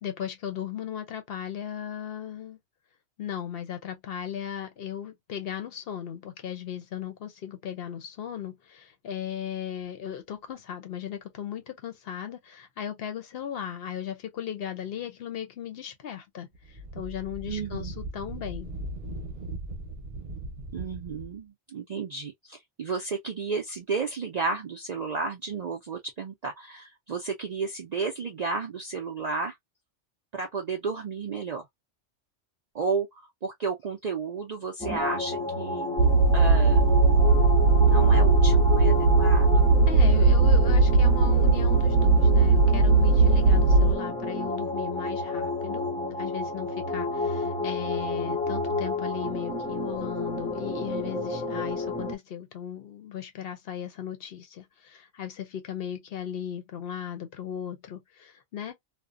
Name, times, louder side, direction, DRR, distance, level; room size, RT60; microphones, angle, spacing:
voice 1, 0.0-2.6 3.2-18.7 39.9-45.9 46.2-58.7, left 9 dB, 60° left, 0.7 m, -37 dB
Wind, 16.5-21.4, right 2 dB, 40° right, 0.8 m, -38 dB
voice 2, 17.5-17.9 20.7-29.6 30.3-31.7 32.7-35.9 36.3-36.9 37.8-39.7, right 4 dB, 60° right, 0.4 m, -32 dB
sound 1, 34.8-52.1, left 2 dB, 5° left, 0.5 m, -31 dB
sound 2, 36.0-44.0, right 3 dB, 80° right, 0.9 m, -19 dB
2.4 x 2.1 x 2.4 m
omnidirectional pair, 1.2 m